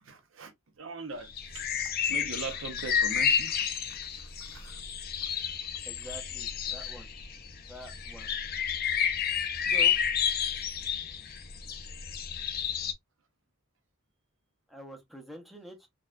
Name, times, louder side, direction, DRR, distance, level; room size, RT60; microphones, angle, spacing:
voice 1, 0.0-1.8 2.1-4.8 9.6-9.7, right 4 dB, 75° right, 0.8 m, -42 dB
sound 1, 1.3-12.9, left 7 dB, 45° left, 0.5 m, -30 dB
voice 2, 5.9-7.1 7.7-8.3 9.7-9.9 14.7-15.9, equal, ahead, 0.6 m, -46 dB
4.1 x 2.3 x 2.3 m
head